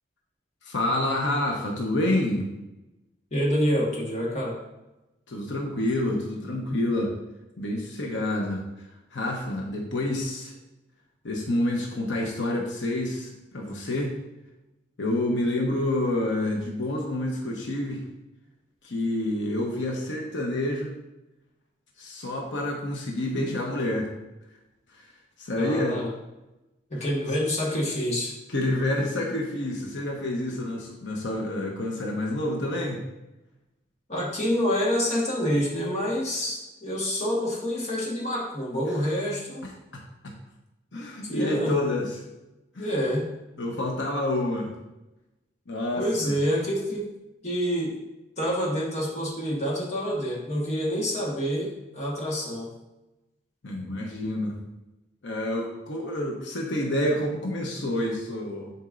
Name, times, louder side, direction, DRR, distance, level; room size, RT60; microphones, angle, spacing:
voice 1, 0.6-2.5 5.3-7.1 7.6-10.5 11.2-14.2 15.0-18.0 18.8-21.0 22.0-24.1 24.9-25.1 25.4-26.0 27.0-27.1 28.5-33.0 39.9-40.3 40.9-42.1 42.7-42.9 43.6-44.7 45.7-46.4 53.6-54.5 55.2-58.7, left 1 dB, 85° left, 0 dB, 1.0 m, -28 dB
voice 2, 3.3-4.6 25.6-26.1 26.9-28.3 34.1-39.7 41.2-41.8 42.8-43.3 45.9-47.1 47.4-48.0 48.4-52.7, equal, 40° left, -4 dB, 1.5 m, -27 dB
9.7 x 4.4 x 2.6 m, 0.98 s
head